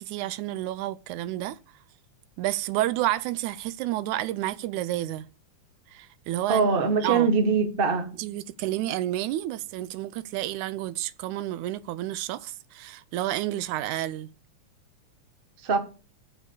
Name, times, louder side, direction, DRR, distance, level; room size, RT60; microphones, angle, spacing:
voice 1, 0.0-1.6 2.4-5.3 5.9-6.7 7.0-7.3 8.2-14.3, right 14 dB, 85° right, 2.0 m, -30 dB
voice 2, 6.5-8.1 15.6-15.8, right 5 dB, 40° right, 0.8 m, -22 dB
7.6 x 6.7 x 5.5 m
omnidirectional pair, 3.4 m